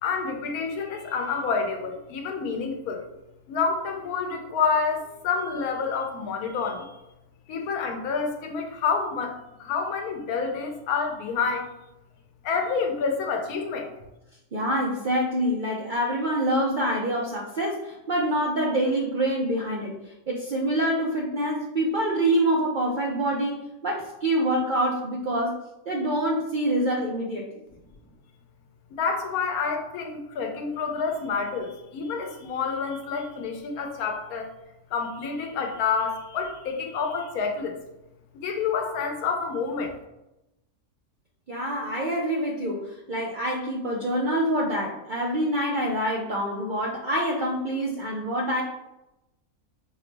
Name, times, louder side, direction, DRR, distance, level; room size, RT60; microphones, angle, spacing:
voice 1, 0.0-3.1 3.5-6.9 7.5-11.7 12.4-13.9 28.9-34.5 34.9-37.8 38.3-39.9, left 5 dB, 90° left, 4 dB, 1.1 m, -28 dB
voice 2, 14.5-27.4 41.5-48.6, right 1 dB, 70° right, -2 dB, 0.4 m, -26 dB
5.5 x 2.0 x 3.2 m, 0.93 s
omnidirectional pair, 1.5 m